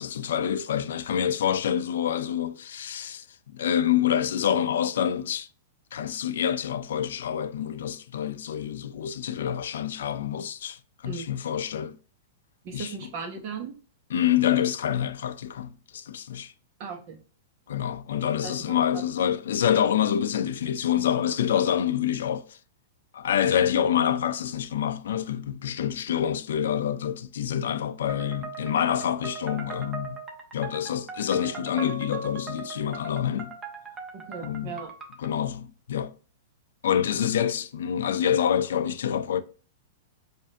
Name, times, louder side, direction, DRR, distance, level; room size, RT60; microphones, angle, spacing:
voice 1, 0.0-5.5 5.9-12.0 12.7-13.1 14.1-16.5 17.7-22.4 23.1-30.2 30.5-33.6 34.4-34.8 35.2-36.1 36.8-39.4, left 9 dB, 80° left, 0.4 m, -27 dB
voice 2, 12.6-13.7 16.8-17.2 18.4-18.8 34.1-34.9, right 5 dB, 45° right, 1.1 m, -37 dB
sound 1, 28.1-35.3, right 4 dB, 20° right, 0.8 m, -39 dB
4.8 x 2.6 x 2.5 m
hypercardioid pair, 145°, 0 cm